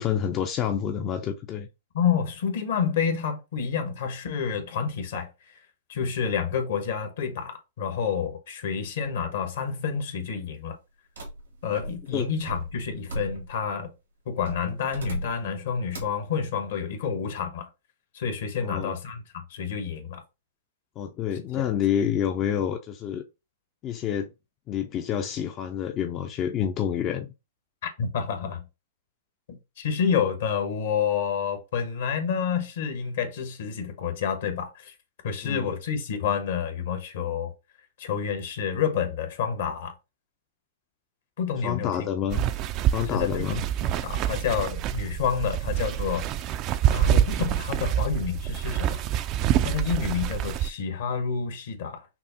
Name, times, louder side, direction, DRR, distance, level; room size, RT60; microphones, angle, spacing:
voice 1, 0.0-1.7 12.1-12.3 18.6-18.9 21.0-23.2 23.8-24.3 24.7-27.3 35.4-35.7 41.6-42.5 42.9-43.6, left 9 dB, 35° left, 0.4 m, -28 dB
voice 2, 1.9-5.5 5.9-10.8 11.6-13.9 14.3-17.7 18.1-19.2 19.5-20.2 21.5-21.6 27.8-28.6 29.5-34.9 35.2-37.5 38.0-39.9 41.4-42.1 43.0-46.2 46.9-49.0 49.6-52.1, left 7 dB, 65° left, 1.1 m, -29 dB
sound 1, 11.2-13.7 14.4-15.5 15.9-16.3, right 1 dB, 85° right, 1.6 m, -37 dB
sound 2, 42.3-50.7, right 11 dB, 40° right, 0.3 m, -26 dB
5.9 x 2.0 x 2.8 m
hypercardioid pair, 115°, 0 cm